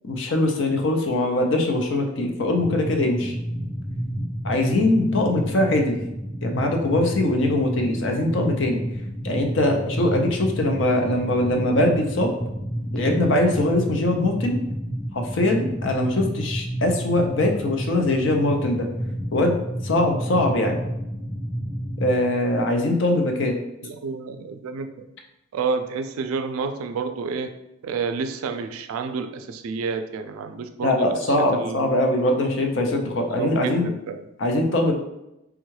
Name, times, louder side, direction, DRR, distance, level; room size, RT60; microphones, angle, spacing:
voice 1, 0.0-3.4 4.4-6.0 6.4-8.8 9.2-12.3 12.9-14.6 15.1-18.9 19.3-19.5 19.8-20.8 22.0-23.5 30.8-33.9 34.4-34.9, left 1 dB, 60° left, 3 dB, 0.5 m, -22 dB
sound 1, 2.6-22.2, equal, 5° left, 0.4 m, -30 dB
voice 2, 23.8-25.1 25.5-27.5 27.8-31.9 33.1-34.3, right 5 dB, 90° right, 8 dB, 0.3 m, -30 dB
3.5 x 2.2 x 3.1 m, 0.89 s
head